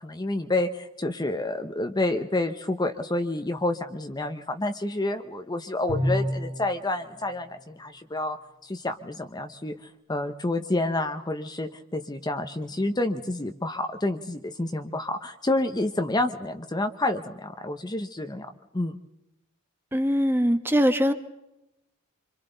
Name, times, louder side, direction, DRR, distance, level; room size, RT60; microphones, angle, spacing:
voice 1, 0.0-8.4 8.6-9.7 10.1-18.5 18.7-18.9, left 2 dB, 20° left, 6 dB, 0.8 m, -29 dB
Bowed string instrument, 5.9-6.8, equal, 50° right, 2.9 m, -27 dB
voice 2, 19.9-21.1, equal, 10° right, 8 dB, 1.2 m, -22 dB
26.0 x 26.0 x 4.0 m, 0.88 s
head